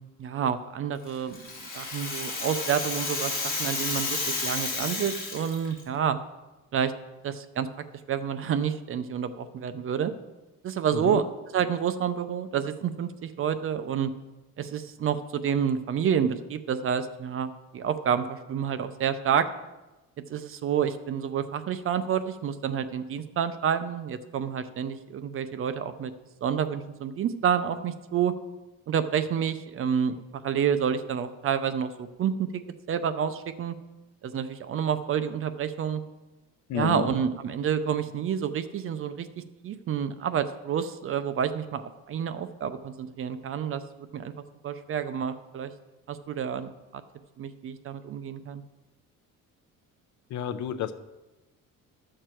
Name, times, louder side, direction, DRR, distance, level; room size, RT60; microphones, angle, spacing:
voice 1, 0.2-1.4 1.7-6.2 6.7-6.9 7.2-7.7 8.1-10.1 10.6-11.3 11.5-14.1 14.6-19.5 20.3-26.1 26.4-28.3 28.9-30.2 30.4-32.6 32.9-33.7 34.2-36.0 36.7-39.3 39.6-43.8 44.1-44.3 44.6-45.7 46.1-47.0 47.4-48.6, right 8 dB, 40° right, 11 dB, 0.5 m, -29 dB
Rattle (instrument), 1.1-5.8, left 3 dB, 25° left, 2.7 m, -31 dB
voice 2, 36.7-37.1 50.3-50.9, left 8 dB, 55° left, 11 dB, 0.7 m, -30 dB
13.0 x 6.6 x 4.5 m, 1.1 s
cardioid pair, 155°, 34 cm